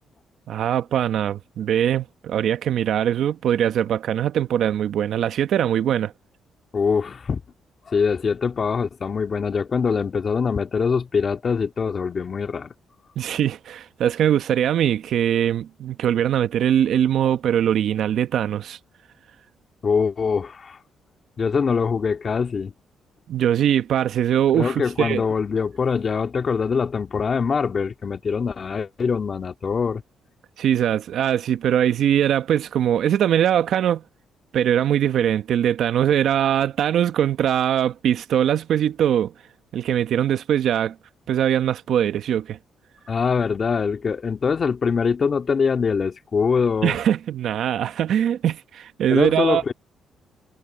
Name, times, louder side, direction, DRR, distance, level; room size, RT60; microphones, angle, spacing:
voice 1, 0.5-6.1 13.2-18.8 23.3-25.2 30.6-34.0 34.5-39.3 39.7-40.9 41.3-42.6 46.8-49.6, right 10 dB, 70° right, 1.0 m, -21 dB
voice 2, 6.7-7.4 7.9-12.7 19.8-20.8 21.4-22.7 24.5-30.0 43.1-46.9 49.1-49.7, left 5 dB, 40° left, 1.9 m, -23 dB
cardioid pair, 90°, 0 cm